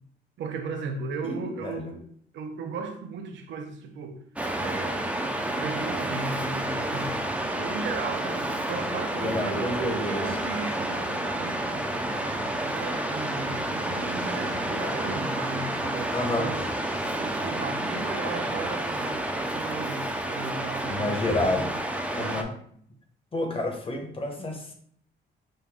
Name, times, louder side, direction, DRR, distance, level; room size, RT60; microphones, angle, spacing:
voice 1, 0.4-2.0 2.3-4.2 4.6-5.2 5.5-7.2 7.4-11.9 12.6-16.6 17.2-21.5 22.2-22.5, right 4 dB, 70° right, 0.7 m, -36 dB
voice 2, 1.2-1.9 9.2-10.2 16.1-16.5 20.9-21.7 22.1-22.5 23.3-24.7, left 2 dB, 25° left, 1.0 m, -29 dB
Waves surf, 4.4-22.4, right 1 dB, 5° right, 0.6 m, -30 dB
5.3 x 2.2 x 3.6 m
cardioid pair, 90°, 20 cm